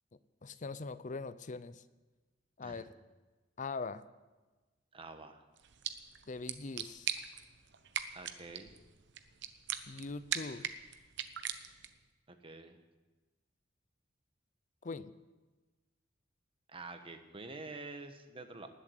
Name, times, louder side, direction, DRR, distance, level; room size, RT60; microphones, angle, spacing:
voice 1, 0.4-1.8 2.6-2.9 3.6-4.0 6.3-7.1 9.9-10.7 14.8-15.1, left 4 dB, 40° left, 15 dB, 0.6 m, -41 dB
voice 2, 4.9-5.4 8.1-8.8 12.3-12.8 16.7-18.7, right 3 dB, 30° right, 7 dB, 1.2 m, -47 dB
sound 1, 5.6-12.1, right 9 dB, 65° right, 0.9 m, -42 dB
19.5 x 7.4 x 7.9 m, 1.2 s
head